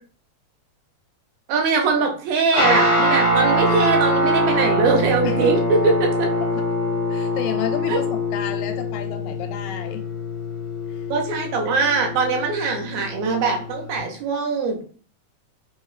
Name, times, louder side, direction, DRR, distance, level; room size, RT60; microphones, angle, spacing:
voice 1, 1.5-5.9 7.9-8.0 11.1-14.8, right 4 dB, 80° right, 3 dB, 2.0 m, -21 dB
Guitar, 2.5-14.0, equal, 25° left, 1.4 m, -23 dB
voice 2, 5.2-5.6 6.4-6.7 7.1-10.0 10.9-11.1, left 10 dB, 80° left, 6 dB, 1.9 m, -31 dB
4.3 x 3.0 x 2.4 m, 0.42 s
omnidirectional pair, 3.4 m